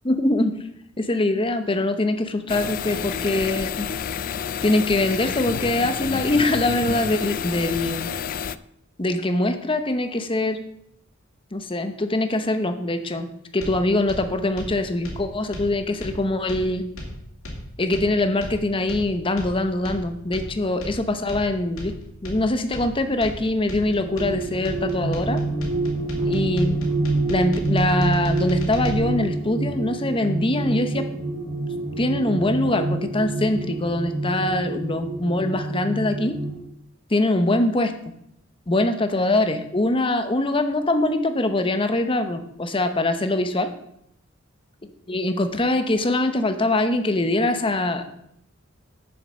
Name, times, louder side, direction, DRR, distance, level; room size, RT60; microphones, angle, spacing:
voice 1, 0.0-0.6 1.0-4.0 4.6-8.1 9.0-10.6 11.5-13.3 13.5-16.8 17.8-21.9 22.2-25.4 26.3-26.8 27.3-31.1 32.0-36.4 37.1-37.9 38.7-43.7 45.1-48.0, left 2 dB, 25° left, 8 dB, 0.8 m, -23 dB
sound 1, 2.5-8.6, left 7 dB, 45° left, 0.3 m, -29 dB
sound 2, 13.6-29.0, equal, 90° left, 2.7 m, -36 dB
sound 3, 23.8-36.6, right 2 dB, 25° right, 1.5 m, -27 dB
7.3 x 7.0 x 6.2 m, 0.75 s
head